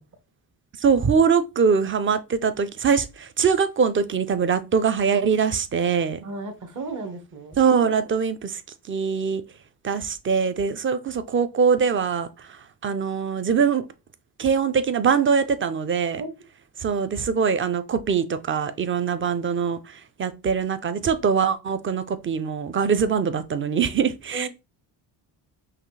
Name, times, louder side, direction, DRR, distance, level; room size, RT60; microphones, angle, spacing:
voice 1, 0.8-6.2 7.6-8.6 8.9-9.4 9.8-12.3 12.8-13.8 14.4-16.2 16.8-19.8 20.2-24.5, right 6 dB, 30° right, 0.5 m, -22 dB
voice 2, 6.2-7.6 16.2-16.3 24.3-24.5, right 3 dB, 45° right, 1.3 m, -34 dB
5.7 x 2.4 x 3.2 m
cardioid pair, 115°, 40 cm